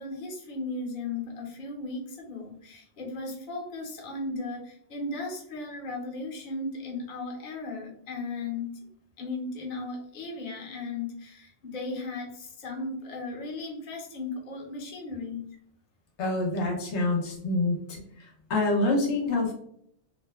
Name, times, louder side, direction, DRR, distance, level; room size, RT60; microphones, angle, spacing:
voice 1, 0.0-8.7 9.2-15.4, left 3 dB, 50° left, -1 dB, 0.8 m, -36 dB
voice 2, 16.2-19.5, left 2 dB, 80° left, 0 dB, 0.9 m, -27 dB
2.7 x 2.1 x 2.2 m, 0.68 s
omnidirectional pair, 1.2 m